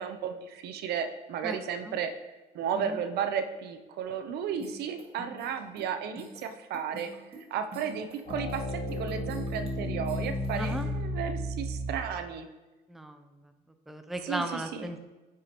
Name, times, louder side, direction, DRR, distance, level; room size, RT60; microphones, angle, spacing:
voice 1, 0.0-12.5 14.2-14.9, right 7 dB, 75° right, 8 dB, 0.6 m, -34 dB
voice 2, 1.4-2.0 2.7-3.0 10.6-10.9 12.9-13.5 13.9-15.0, right 1 dB, ahead, 7 dB, 0.5 m, -37 dB
sound 1, 4.6-10.8, equal, 35° right, 1.6 m, -48 dB
sound 2, 8.3-12.2, left 1 dB, 50° left, 1.8 m, -33 dB
9.0 x 4.8 x 2.9 m, 1.2 s
cardioid pair, 110°, 17 cm